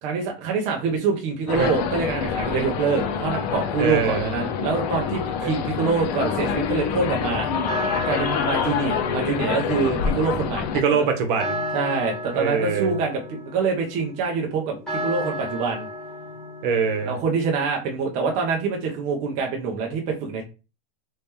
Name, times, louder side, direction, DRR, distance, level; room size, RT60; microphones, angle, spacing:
voice 1, 0.0-7.5 8.1-10.7 11.7-15.9 17.1-20.4, right 4 dB, 25° right, 0.5 m, -25 dB
sound 1, 1.5-10.8, left 7 dB, 40° left, 0.6 m, -26 dB
voice 2, 3.8-4.3 5.4-5.5 10.7-11.6 12.3-12.9 16.6-17.2, right 5 dB, 55° right, 0.9 m, -23 dB
sound 2, 6.4-17.6, equal, ahead, 1.2 m, -34 dB
3.1 x 2.8 x 3.4 m
supercardioid pair, 170°, 31 cm